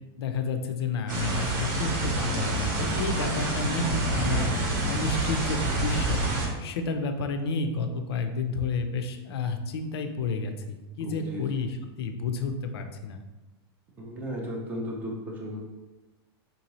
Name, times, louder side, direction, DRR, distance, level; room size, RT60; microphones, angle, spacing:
voice 1, 0.2-4.5 4.8-6.2 6.6-13.2, left 4 dB, 75° left, 6 dB, 0.4 m, -31 dB
sound 1, 1.1-6.5, right 2 dB, 45° right, 0.8 m, -27 dB
voice 2, 11.0-11.4 14.0-15.6, equal, 10° right, -1 dB, 0.4 m, -35 dB
3.6 x 2.7 x 2.9 m, 1.1 s
supercardioid pair, 175°, 13 cm